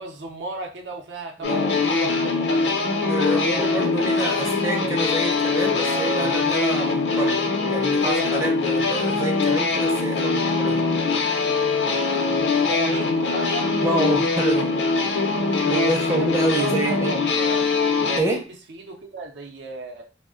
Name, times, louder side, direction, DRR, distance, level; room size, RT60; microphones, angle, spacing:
voice 1, 0.0-2.7 3.3-3.9 12.5-13.7 15.8-17.7 18.2-18.4 18.7-20.0, right 2 dB, 75° right, 3 dB, 0.6 m, -35 dB
sound 1, 1.4-18.2, left 4 dB, 75° left, 0.5 m, -22 dB
voice 2, 1.4-1.7 3.1-10.9 13.8-14.7 15.6-17.1 18.2-18.4, right 2 dB, 15° right, 0 dB, 0.5 m, -27 dB
2.3 x 2.1 x 3.6 m, 0.34 s
head